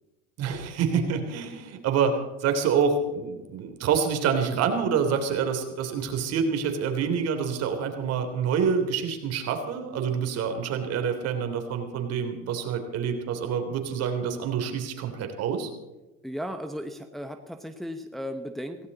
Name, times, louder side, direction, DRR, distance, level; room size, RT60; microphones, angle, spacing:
voice 1, 0.4-15.7, right 6 dB, 55° right, 6 dB, 3.1 m, -27 dB
voice 2, 16.2-18.9, equal, ahead, 6 dB, 1.0 m, -35 dB
17.0 x 17.0 x 4.1 m, 1.1 s
supercardioid pair, 110°, 31 cm